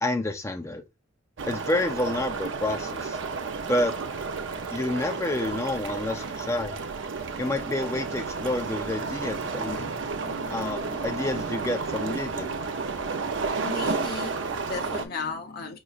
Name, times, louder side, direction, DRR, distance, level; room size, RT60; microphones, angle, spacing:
voice 1, 0.0-0.8 1.5-3.2 3.7-3.9 4.7-6.8 7.4-9.9 10.5-12.6, left 1 dB, 15° left, 0.5 m, -29 dB
sound 1, 1.4-15.1, right 4 dB, 75° right, 0.5 m, -32 dB
voice 2, 9.0-11.3 13.6-15.8, left 3 dB, 55° left, 0.8 m, -37 dB
5.0 x 3.0 x 2.4 m
head